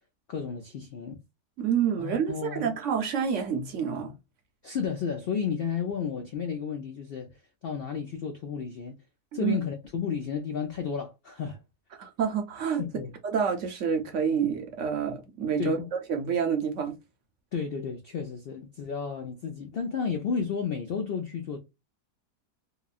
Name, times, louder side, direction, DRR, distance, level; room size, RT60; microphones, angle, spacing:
voice 1, 0.3-1.2 2.0-2.7 4.6-7.3 7.6-9.0 9.3-11.6 12.8-13.1 15.6-15.9 17.5-21.6, left 6 dB, 85° left, 0.5 m, -32 dB
voice 2, 1.6-4.1 9.4-9.6 12.0-12.8 13.3-17.0, right 7 dB, 60° right, 0.9 m, -28 dB
2.9 x 2.3 x 2.3 m
omnidirectional pair, 1.6 m